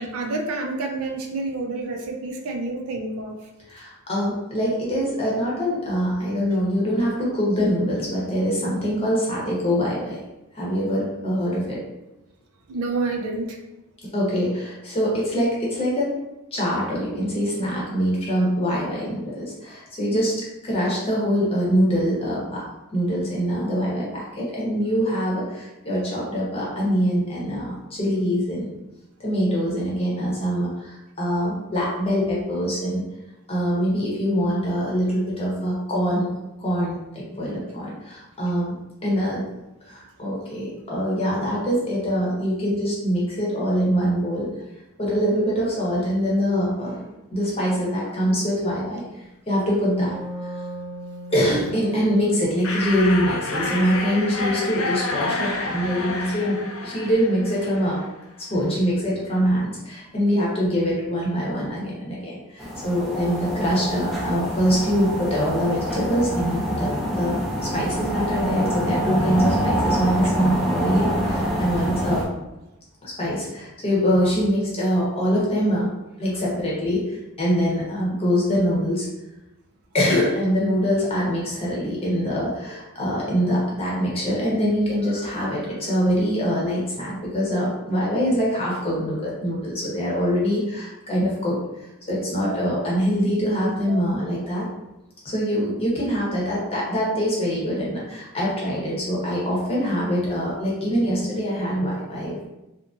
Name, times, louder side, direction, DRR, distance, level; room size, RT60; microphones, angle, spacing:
voice 1, 0.0-3.5 12.7-13.6 64.3-64.5 92.3-92.7 93.9-94.0, right 3 dB, 75° right, 2 dB, 0.4 m, -29 dB
voice 2, 3.7-10.2 10.5-11.8 14.0-16.1 16.5-20.3 20.6-22.6 22.9-28.7 29.2-33.0 33.5-36.3 36.6-38.7 39.0-39.5 39.9-44.5 45.0-47.1 47.3-49.0 49.5-50.2 50.4-50.5 51.3-58.0 58.4-72.2 73.0-79.1 79.9-91.6 92.1-94.6 95.2-102.5, equal, 25° left, -5 dB, 0.8 m, -24 dB
Wind instrument woodwind instrument, 49.9-55.6, left 1 dB, 25° right, 0.8 m, -39 dB
sound 1, 52.6-58.2, left 2 dB, 65° left, 0.4 m, -29 dB
sound 2, 62.6-72.2, equal, ahead, 0.4 m, -26 dB
2.8 x 2.5 x 2.4 m, 0.96 s
head